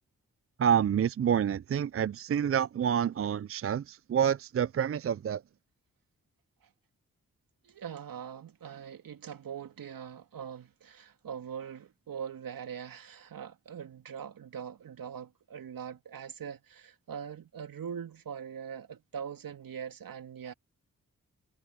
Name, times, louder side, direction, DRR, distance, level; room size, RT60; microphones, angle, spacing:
voice 1, 0.6-5.4, right 8 dB, 40° right, 0.5 m, -28 dB
voice 2, 7.6-20.5, right 8 dB, 70° right, 2.9 m, -42 dB
supercardioid pair, 40°, 35 cm